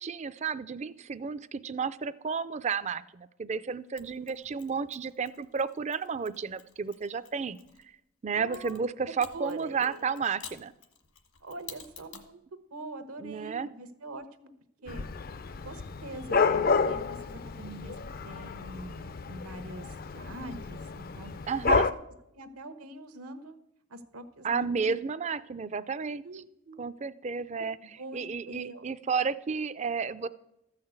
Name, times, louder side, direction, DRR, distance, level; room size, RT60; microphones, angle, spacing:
voice 1, 0.0-7.6 8.2-10.7 13.2-13.7 14.9-15.0 21.5-21.9 24.4-26.4 26.8-30.3, right 5 dB, 30° right, 16 dB, 0.4 m, -32 dB
Mechanisms, 4.0-7.8 8.5-12.3, left 8 dB, 75° left, 1.4 m, -51 dB
voice 2, 8.3-8.8 9.3-10.1 11.4-12.4 12.7-14.5 14.8-15.1 15.6-17.9 18.2-21.3 22.3-23.6 23.9-25.0 26.2-26.8 28.0-28.8, right 2 dB, 85° right, 11 dB, 1.1 m, -44 dB
Dog / Cat, 14.9-21.9, left 4 dB, 40° left, 0.4 m, -30 dB
13.5 x 5.7 x 7.9 m, 0.85 s
head